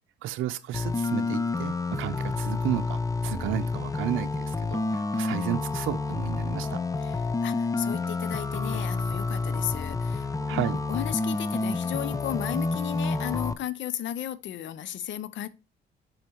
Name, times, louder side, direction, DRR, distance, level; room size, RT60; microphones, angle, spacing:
voice 1, 0.2-6.8 10.5-10.8, right 13 dB, 85° right, 0.6 m, -32 dB
sound 1, 0.7-13.5, left 3 dB, 15° left, 0.5 m, -29 dB
voice 2, 7.0-15.5, left 11 dB, 70° left, 0.7 m, -34 dB
6.4 x 4.4 x 4.4 m
cardioid pair, 90°, 20 cm